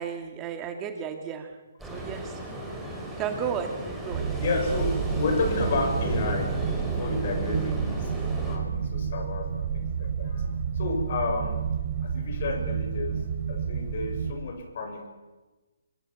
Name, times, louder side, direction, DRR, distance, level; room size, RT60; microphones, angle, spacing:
voice 1, 0.0-2.4 3.1-3.7 4.0-4.3 7.5-7.8, right 7 dB, 20° right, 5 dB, 2.1 m, -34 dB
Ocean, 1.8-8.6, equal, ahead, 5.9 m, -34 dB
sound 1, 4.1-14.3, right 7 dB, 40° right, 3.6 m, -30 dB
voice 2, 4.4-6.6 6.9-8.1 8.5-10.5 10.8-11.7 12.0-13.2 13.5-15.1, left 3 dB, 45° left, 5 dB, 7.1 m, -31 dB
25.5 x 20.0 x 8.8 m, 1.2 s
figure-of-eight pair, 135°, 0 cm